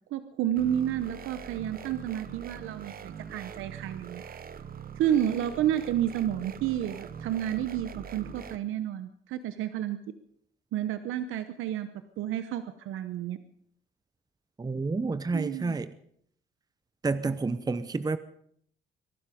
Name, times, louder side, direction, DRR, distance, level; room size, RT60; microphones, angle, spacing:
voice 1, 0.1-4.2 5.0-10.0 10.7-11.9 12.2-13.4 15.3-15.8, right 11 dB, 85° right, 0.9 m, -30 dB
sound 1, 0.6-8.6, right 7 dB, 50° right, 1.0 m, -43 dB
voice 2, 14.6-15.9 17.0-18.2, right 3 dB, 20° right, 0.8 m, -29 dB
23.0 x 12.0 x 5.2 m
cardioid pair, 90°, 20 cm